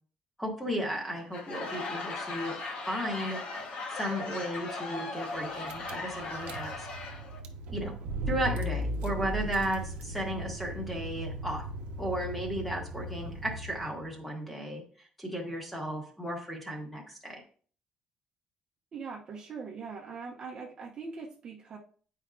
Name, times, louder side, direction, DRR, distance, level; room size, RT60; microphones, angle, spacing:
voice 1, 0.4-2.6 2.9-3.4 3.9-6.9 7.7-7.9 8.3-11.6 12.0-14.8 15.2-17.4, equal, 5° left, 0 dB, 1.3 m, -34 dB
Laughter / Crowd, 1.2-7.4, left 3 dB, 60° left, 1.0 m, -38 dB
Car / Engine, 5.4-5.5 5.7-14.0, right 1 dB, 75° right, 0.8 m, -37 dB
voice 2, 18.9-21.8, right 5 dB, 35° right, -1 dB, 0.9 m, -41 dB
9.6 x 4.8 x 2.4 m, 0.43 s
cardioid pair, 170°, 2 cm